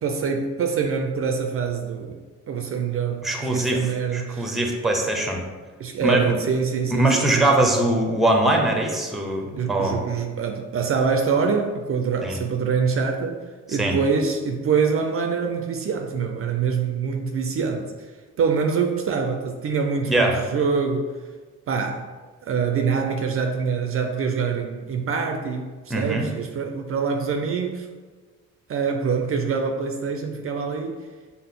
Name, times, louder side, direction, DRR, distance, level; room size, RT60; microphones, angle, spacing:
voice 1, 0.0-2.2 2.5-4.5 5.8-7.5 9.6-17.9 18.4-21.1 21.7-22.1 22.4-27.9 28.7-31.1, right 5 dB, 45° right, 3 dB, 0.4 m, -25 dB
voice 2, 3.2-3.8 4.1-5.4 6.0-6.4 6.9-10.0 12.2-12.4 13.8-14.0 20.0-20.4 25.9-26.3, right 1 dB, ahead, 1 dB, 0.7 m, -22 dB
5.6 x 2.1 x 3.6 m, 1.4 s
cardioid pair, 90°, 30 cm